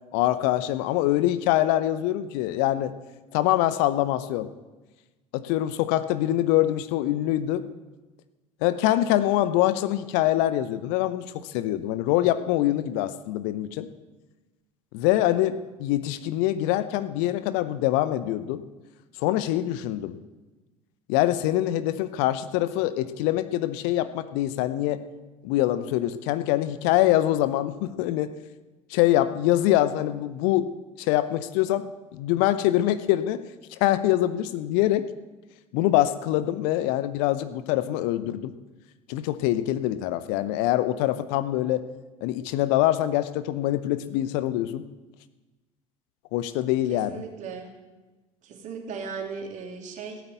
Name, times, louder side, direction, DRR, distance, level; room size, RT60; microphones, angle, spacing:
voice 1, 0.1-2.9 3.3-4.5 5.3-7.6 8.6-13.9 14.9-18.6 19.2-20.2 21.1-25.0 25.4-28.3 28.9-30.7 31.0-31.8 32.1-33.4 33.7-35.1 35.7-38.5 39.1-41.8 42.2-44.8 46.3-47.2, left 14 dB, 55° left, 13 dB, 0.8 m, -24 dB
voice 2, 46.9-47.7 48.4-50.2, right 5 dB, 45° right, 3 dB, 3.1 m, -37 dB
16.0 x 9.4 x 8.2 m, 1.2 s
figure-of-eight pair, 65°, 18 cm